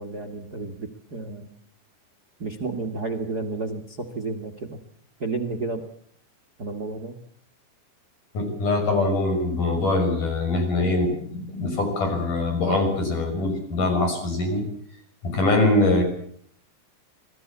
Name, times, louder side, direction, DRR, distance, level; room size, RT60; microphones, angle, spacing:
voice 1, 0.0-1.5 2.4-4.8 5.2-5.9 6.6-7.2, right 3 dB, 70° right, 9 dB, 0.9 m, -31 dB
voice 2, 8.3-14.7 15.2-16.0, left 2 dB, 45° left, 4 dB, 7.5 m, -23 dB
26.5 x 19.0 x 8.4 m, 0.63 s
omnidirectional pair, 5.0 m